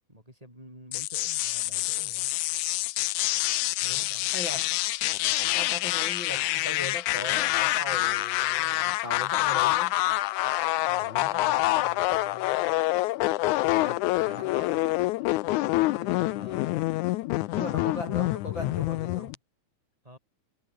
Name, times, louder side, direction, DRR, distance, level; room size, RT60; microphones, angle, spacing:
voice 1, 0.1-2.3 3.8-4.3 10.9-12.7 13.5-13.6 14.3-14.8 15.2-16.7 20.0-20.2, equal, 10° right, 7.8 m, -49 dB
sound 1, 0.9-19.4, left 19 dB, 85° left, 2.1 m, -27 dB
voice 2, 3.8-4.7 5.5-9.9 11.0-11.4 13.6-14.8 17.5-19.3, left 2 dB, 40° left, 4.8 m, -39 dB
omnidirectional pair, 3.5 m